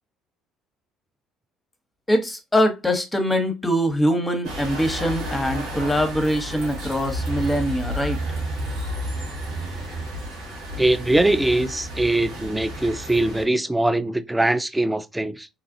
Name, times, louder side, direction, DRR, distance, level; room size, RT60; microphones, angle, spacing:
voice 1, 2.1-8.2, equal, 15° left, 0.9 m, -23 dB
sound 1, 4.4-13.4, right 1 dB, 70° right, 1.9 m, -31 dB
voice 2, 10.8-15.5, right 2 dB, 10° right, 0.4 m, -22 dB
3.0 x 2.4 x 2.6 m
hypercardioid pair, 65°, 0 cm